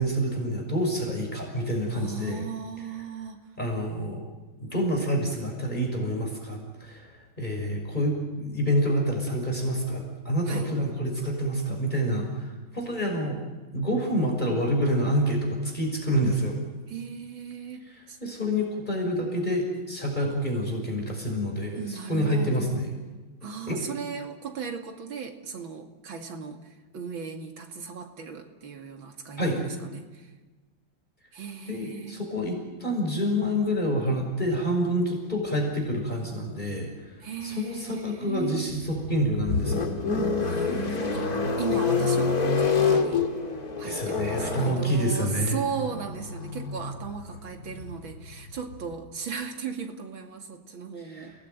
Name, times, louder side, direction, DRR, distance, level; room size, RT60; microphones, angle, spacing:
voice 1, 0.0-2.5 3.6-4.2 4.6-13.4 13.7-16.6 17.9-22.9 23.7-23.9 29.4-29.6 31.7-37.2 37.4-39.9 43.8-45.6 51.0-51.3, equal, 20° left, 0 dB, 5.9 m, -27 dB
voice 2, 1.9-3.4 10.5-10.7 16.9-18.2 21.8-22.8 23.4-30.3 31.3-32.2 37.2-38.7 40.2-43.3 43.8-51.3, right 6 dB, 90° right, 4 dB, 3.1 m, -37 dB
sound 1, 38.7-48.9, left 4 dB, 50° left, 2.7 m, -28 dB
29.5 x 19.5 x 9.4 m, 1.2 s
omnidirectional pair, 2.1 m